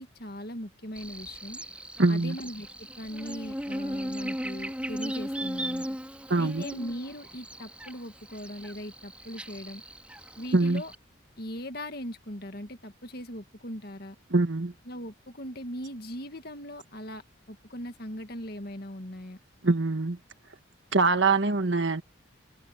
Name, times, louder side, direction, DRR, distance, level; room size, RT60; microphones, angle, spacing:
voice 1, 0.0-1.6 2.1-2.7 3.0-5.9 6.4-9.8 10.4-10.9 11.4-14.2 14.9-17.2 17.5-19.4, equal, 50° left, 2.0 m, -39 dB
Buzz, 1.0-11.0, equal, 5° right, 3.8 m, -37 dB
voice 2, 2.0-2.4 6.3-6.6 10.5-10.8 14.3-14.7 19.6-20.2 20.9-22.0, right 3 dB, 65° right, 1.6 m, -23 dB
head